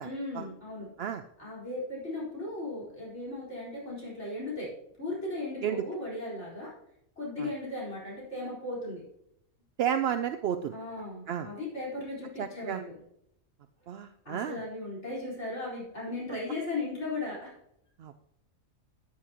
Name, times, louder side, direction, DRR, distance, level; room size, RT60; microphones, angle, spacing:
voice 1, 0.0-0.9 1.4-4.7 5.0-6.7 7.2-9.0 10.7-12.9 14.2-17.5, left 2 dB, 50° left, -6 dB, 4.8 m, -37 dB
voice 2, 9.8-10.7 11.3-11.5 12.4-12.8 13.9-14.6 18.0-18.3, right 9 dB, 70° right, 8 dB, 0.6 m, -32 dB
13.0 x 8.5 x 2.9 m, 0.74 s
omnidirectional pair, 1.5 m